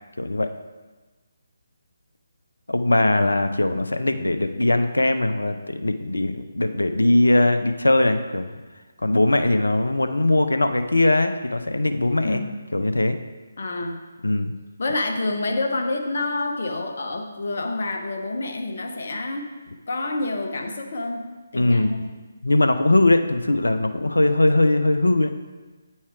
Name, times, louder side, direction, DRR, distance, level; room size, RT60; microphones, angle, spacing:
voice 1, 0.2-0.5 2.7-8.6 9.0-12.4 12.7-13.2 14.2-14.5 21.5-22.0 22.4-25.3, left 2 dB, 75° left, 8 dB, 0.6 m, -20 dB
voice 2, 12.2-12.6 13.6-14.0 14.8-19.5 19.9-21.3 21.5-22.1, left 2 dB, 50° left, 3 dB, 0.9 m, -28 dB
8.4 x 4.3 x 4.7 m, 1.3 s
figure-of-eight pair, 145°, 0 cm